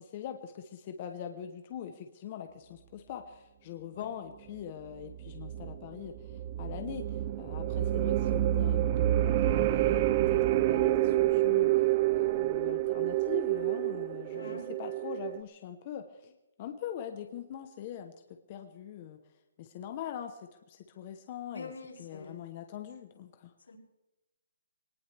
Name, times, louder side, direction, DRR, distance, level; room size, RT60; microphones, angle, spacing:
voice 1, 0.0-11.7 12.1-18.1 18.5-19.2 19.6-20.4 20.7-21.7 22.0-23.5, left 9 dB, 25° left, 6 dB, 0.9 m, -42 dB
sound 1, 5.1-15.4, right 14 dB, 20° right, 0.5 m, -28 dB
voice 2, 14.3-14.7 21.5-22.4 23.7-23.8, left 3 dB, 85° left, -3 dB, 6.5 m, -45 dB
22.5 x 19.0 x 3.4 m, 1.0 s
hypercardioid pair, 180°, 0 cm